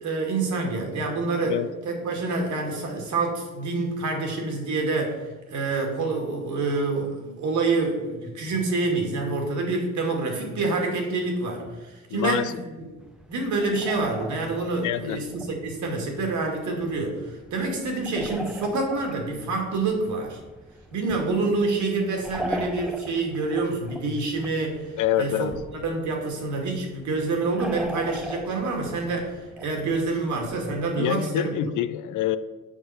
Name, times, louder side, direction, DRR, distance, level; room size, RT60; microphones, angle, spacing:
voice 1, 0.0-1.5 1.8-12.9 13.3-20.4 20.9-25.5 25.7-31.5, right 3 dB, 70° right, 1 dB, 2.2 m, -27 dB
voice 2, 12.1-12.5 14.8-15.2 25.0-25.6 30.9-32.4, left 12 dB, 75° left, 13 dB, 0.6 m, -26 dB
sound 1, 13.0-31.0, right 1 dB, 5° right, 0.7 m, -41 dB
7.3 x 5.6 x 5.7 m, 1.2 s
cardioid pair, 90°, 31 cm